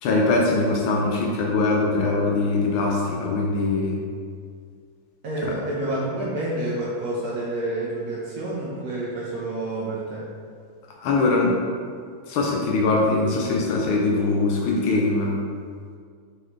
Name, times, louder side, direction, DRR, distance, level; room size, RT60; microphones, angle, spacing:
voice 1, 0.0-4.0 5.4-5.5 11.0-11.6 12.3-15.3, left 3 dB, 90° left, -2 dB, 1.6 m, -22 dB
voice 2, 5.2-10.2, right 1 dB, 55° right, -8 dB, 1.3 m, -28 dB
7.9 x 3.9 x 3.3 m, 2.1 s
omnidirectional pair, 2.2 m